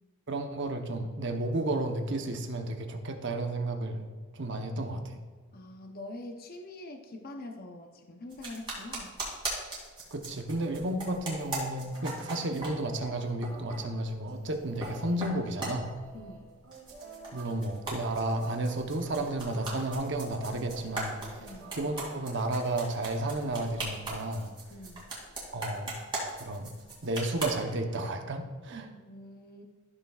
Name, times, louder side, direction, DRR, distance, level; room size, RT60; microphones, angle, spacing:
voice 1, 0.3-5.2 10.1-15.9 17.3-21.4 21.7-24.5 25.5-25.9 26.4-26.7 27.0-28.9, right 2 dB, 55° right, 5 dB, 0.9 m, -32 dB
voice 2, 5.5-9.2 16.1-16.5 21.4-21.8 24.7-25.1 28.9-29.6, left 1 dB, 45° left, 4 dB, 0.7 m, -44 dB
sound 1, 8.3-13.1 13.4-13.8 14.4-14.9 15.2-16.4 16.7-27.6, right 2 dB, 20° right, 2.7 m, -39 dB
sound 2, 11.3-24.5, right 4 dB, 75° right, 2.5 m, -50 dB
14.0 x 6.9 x 2.4 m, 1.5 s
head